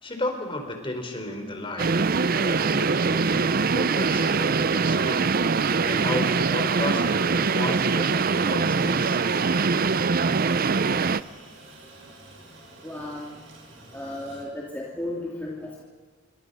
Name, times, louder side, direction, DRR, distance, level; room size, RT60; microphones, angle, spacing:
voice 1, 0.0-2.0 2.3-3.5 3.7-5.3 5.8-9.2, left 1 dB, 25° left, 4 dB, 4.1 m, -33 dB
sound 1, 1.8-11.2, right 4 dB, 50° right, 0.6 m, -23 dB
Aircraft, 2.0-14.4, right 2 dB, 75° right, 5.8 m, -47 dB
voice 2, 12.8-13.3 13.9-15.8, left 1 dB, 10° left, -4 dB, 2.6 m, -34 dB
27.5 x 24.5 x 5.6 m, 1.5 s
head